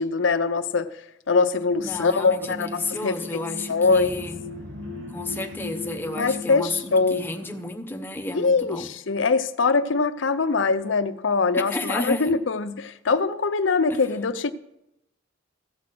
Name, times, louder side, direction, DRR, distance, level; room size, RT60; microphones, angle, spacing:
voice 1, 0.0-3.2 3.7-4.2 6.2-7.3 8.3-14.5, left 4 dB, 70° left, 11 dB, 0.6 m, -23 dB
sound 1, 1.7-7.6, left 3 dB, 80° right, 2.8 m, -37 dB
voice 2, 1.8-4.4 5.1-8.9 11.5-12.3 13.9-14.0, left 2 dB, 10° left, 4 dB, 0.8 m, -32 dB
15.5 x 6.2 x 6.0 m, 0.86 s
head